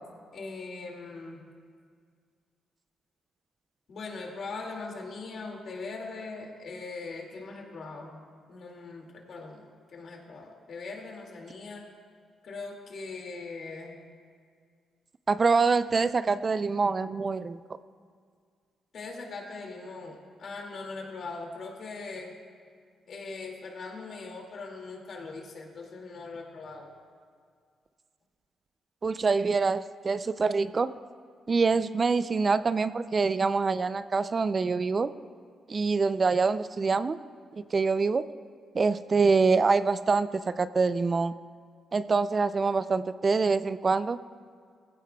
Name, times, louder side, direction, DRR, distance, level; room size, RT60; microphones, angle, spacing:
voice 1, 0.3-1.5 3.9-8.2 8.5-11.9 12.4-14.0 18.9-22.3 23.1-26.9, left 3 dB, 60° left, 1 dB, 2.2 m, -40 dB
voice 2, 15.3-17.6 29.0-30.9 31.5-35.1 35.7-37.2 37.5-38.3 38.7-41.3 41.9-44.2, right 4 dB, 35° right, 13 dB, 0.4 m, -25 dB
18.5 x 15.5 x 2.3 m, 2.1 s
cardioid pair, 90°, 0 cm